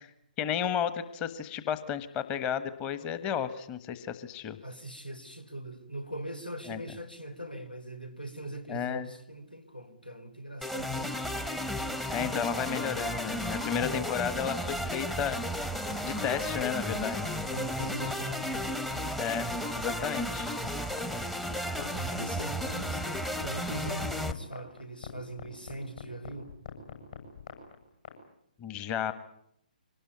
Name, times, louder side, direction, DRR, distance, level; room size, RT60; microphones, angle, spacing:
voice 1, 0.4-4.6 6.7-6.8 8.7-9.0 12.1-15.4 16.0-17.4 19.2-19.5 19.8-20.5 28.6-29.1, left 8 dB, 20° left, 1.3 m, -33 dB
voice 2, 4.6-11.2 17.5-18.5 21.6-26.5, right 1 dB, 90° left, 3.9 m, -41 dB
sound 1, 10.6-24.3, equal, 5° left, 0.9 m, -34 dB
sound 2, 15.3-28.1, left 8 dB, 55° left, 7.6 m, -43 dB
25.0 x 19.5 x 9.5 m
figure-of-eight pair, 130°, 5 cm